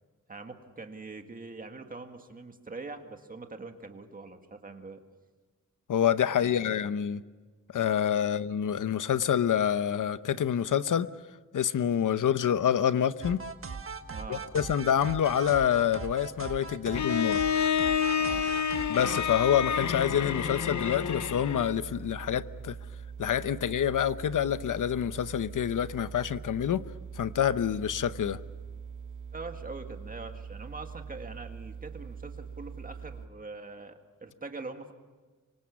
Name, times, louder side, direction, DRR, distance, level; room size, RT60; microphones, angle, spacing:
voice 1, 0.3-5.0 6.3-6.8 8.2-8.3 14.0-14.5 18.2-18.5 29.3-34.9, right 3 dB, 30° right, 1.9 m, -43 dB
voice 2, 5.9-7.2 7.7-11.1 11.5-13.4 14.3-17.4 18.9-22.8 23.2-26.8 27.2-28.4, left 9 dB, 85° left, 0.8 m, -27 dB
sound 1, 13.2-19.2, right 4 dB, 45° right, 1.6 m, -39 dB
Bowed string instrument, 16.9-21.8, left 7 dB, 65° left, 1.0 m, -29 dB
sound 2, 19.0-33.3, right 6 dB, 75° right, 1.2 m, -43 dB
25.0 x 24.5 x 7.1 m
wide cardioid pair, 170°, 30 cm